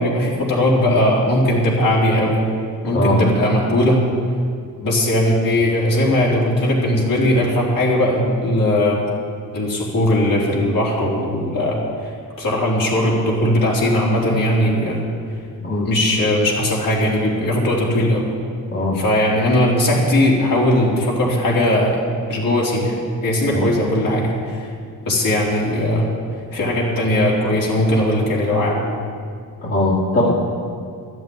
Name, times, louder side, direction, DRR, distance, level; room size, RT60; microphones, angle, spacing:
voice 1, 0.0-2.4 2.8-4.0 4.8-9.0 9.5-15.0 15.8-18.2 18.9-22.0 22.3-24.7 25.1-26.1 26.5-28.8, left 1 dB, 60° left, -4 dB, 3.9 m, -18 dB
voice 2, 2.9-3.3 15.6-15.9 18.7-19.0 23.5-23.7 29.6-30.3, left 1 dB, 40° left, -7 dB, 2.4 m, -20 dB
13.0 x 7.8 x 8.7 m, 2.2 s
cardioid pair, 105°, 37 cm